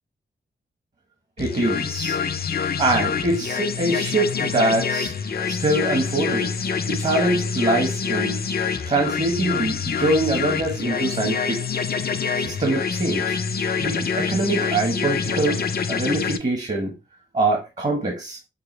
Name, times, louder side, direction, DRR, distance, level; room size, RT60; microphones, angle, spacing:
sound 1, 1.4-16.4, left 6 dB, 50° left, 0.5 m, -26 dB
voice 1, 1.4-2.2 2.8-5.1 5.5-6.5 6.9-8.4 8.8-11.9 12.4-13.4 13.8-16.9 17.3-18.4, right 2 dB, 40° right, 1.2 m, -24 dB
6.6 x 2.3 x 3.2 m
wide cardioid pair, 85°, 20 cm